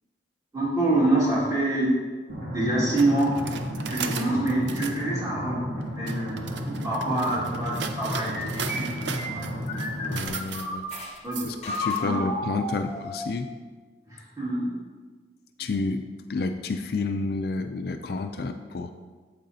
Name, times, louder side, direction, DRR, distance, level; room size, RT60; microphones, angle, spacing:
voice 1, 0.5-2.0 2.5-3.4 3.9-5.6 5.9-6.6 6.8-9.7 11.2-11.5 11.8-12.1 14.1-14.7, right 2 dB, 20° right, -6 dB, 2.0 m, -26 dB
sound 1, 2.3-10.3, equal, 55° right, 2.1 m, -33 dB
sound 2, 3.0-5.0 5.8-12.0, right 6 dB, 70° right, 0.5 m, -37 dB
sound 3, 8.3-11.1 11.6-13.4, left 1 dB, 35° left, 0.7 m, -33 dB
voice 2, 10.1-10.8 11.4-13.5 15.6-16.0 16.3-18.9, left 3 dB, 55° left, 7 dB, 0.3 m, -30 dB
8.7 x 7.5 x 2.7 m, 1.4 s
head